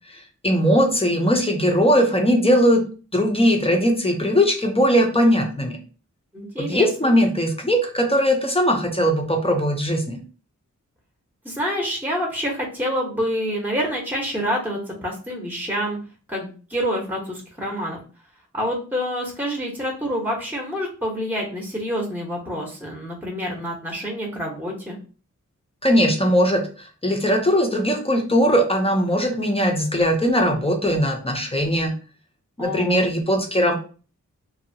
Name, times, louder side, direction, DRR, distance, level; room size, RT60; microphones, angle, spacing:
voice 1, 0.4-5.8 6.6-10.2 25.8-31.9 32.6-33.8, equal, 20° left, 2 dB, 0.6 m, -20 dB
voice 2, 6.3-7.1 11.4-16.0 16.3-18.0 18.5-25.0 32.6-33.1, equal, 5° right, -1 dB, 0.9 m, -27 dB
2.7 x 2.3 x 2.7 m, 0.37 s
wide cardioid pair, 65°, 31 cm